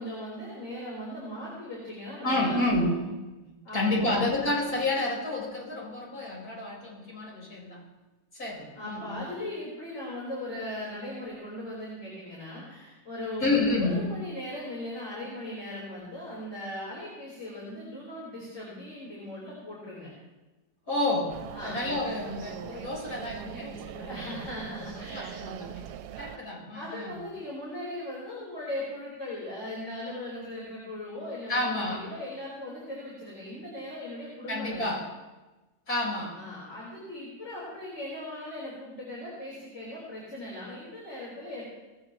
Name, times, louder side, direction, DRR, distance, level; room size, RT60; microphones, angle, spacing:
voice 1, 0.0-3.0 3.6-4.3 8.7-20.1 21.5-21.8 23.9-25.3 26.1-26.4 26.7-35.0 36.3-41.6, left 1 dB, 40° left, -6 dB, 4.5 m, -38 dB
voice 2, 2.2-3.2 3.4-7.9 8.3-9.2 13.4-14.0 20.9-24.1 24.7-25.9 26.2-27.1 31.5-32.0 34.5-35.0 35.9-36.4, left 2 dB, 60° left, -4 dB, 5.2 m, -30 dB
sound 1, 21.3-26.4, right 10 dB, 80° right, 1.2 m, -41 dB
19.5 x 16.5 x 3.0 m, 1.1 s
omnidirectional pair, 1.8 m